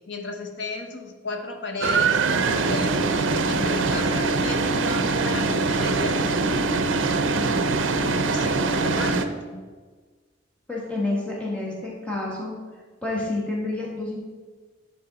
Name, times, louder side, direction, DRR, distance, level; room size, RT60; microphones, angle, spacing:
voice 1, 0.1-7.2 8.1-9.7, left 3 dB, 65° left, 4 dB, 0.8 m, -34 dB
sound 1, 1.8-9.3, right 3 dB, 75° right, 0.5 m, -23 dB
voice 2, 10.7-12.5 13.0-14.1, left 2 dB, 5° left, -5 dB, 1.4 m, -28 dB
9.7 x 4.2 x 4.0 m, 1.4 s
head